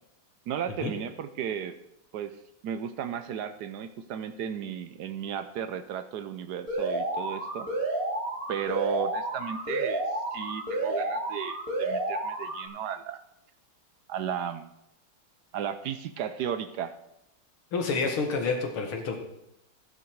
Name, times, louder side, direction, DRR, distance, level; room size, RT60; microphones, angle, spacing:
voice 1, 0.5-1.8 2.1-2.3 2.6-7.7 8.5-10.0 10.3-13.2 14.1-14.7 15.5-16.9, right 8 dB, 70° right, 11 dB, 0.9 m, -34 dB
Alarm, 6.7-12.7, right 2 dB, 40° right, 3.4 m, -31 dB
voice 2, 17.7-19.2, left 4 dB, 75° left, 4 dB, 2.6 m, -28 dB
12.5 x 10.5 x 4.7 m, 0.81 s
omnidirectional pair, 2.4 m